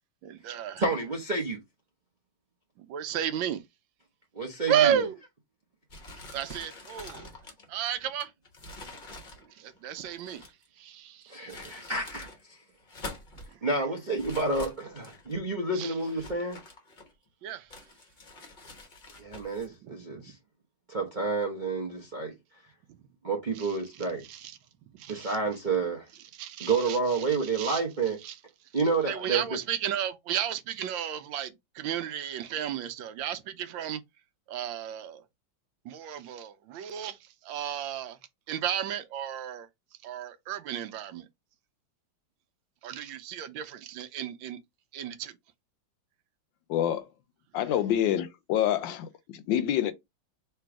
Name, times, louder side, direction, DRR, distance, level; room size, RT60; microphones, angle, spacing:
voice 1, 0.2-0.8 2.8-3.6 4.7-5.2 6.3-7.3 7.7-8.3 9.4-10.5 10.8-11.7 13.5-13.6 15.7-15.9 17.4-17.7 19.8-20.3 23.5-24.6 24.9-25.4 26.3-27.8 28.2-28.4 29.1-34.0 34.5-35.2 35.8-38.2 38.5-39.7 40.0-41.3 42.8-44.6 44.9-45.4, right 10 dB, 80° right, 1.3 m, -33 dB
voice 2, 0.8-1.6 4.3-5.0 11.3-12.6 13.6-16.6 19.2-20.4 20.9-22.3 23.2-24.2 25.1-26.1 26.6-28.2 28.7-29.4, right 3 dB, 50° right, 0.5 m, -29 dB
sound 1, 5.9-10.7 11.3-12.4 12.8-13.5 14.2-15.4 16.0-17.3 17.7-19.7, left 2 dB, 35° left, 0.9 m, -46 dB
voice 3, 46.7-47.0 47.5-49.9, left 11 dB, 75° left, 1.2 m, -27 dB
3.4 x 2.9 x 4.6 m
omnidirectional pair, 2.2 m